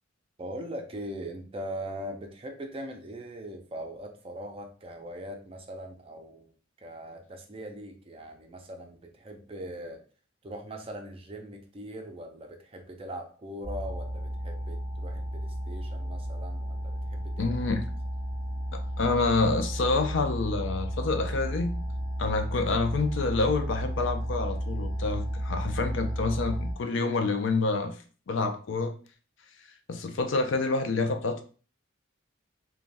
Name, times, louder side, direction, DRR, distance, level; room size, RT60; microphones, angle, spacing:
voice 1, 0.4-6.5 6.8-10.0 10.4-17.5, right 1 dB, 30° right, 4 dB, 0.4 m, -41 dB
sound 1, 13.6-26.7, equal, 20° left, 1.3 m, -33 dB
voice 2, 17.4-17.9 18.7-21.8 22.2-28.0 28.3-28.9 29.9-31.4, left 3 dB, 65° left, 7 dB, 0.4 m, -28 dB
3.2 x 2.2 x 2.5 m, 0.38 s
head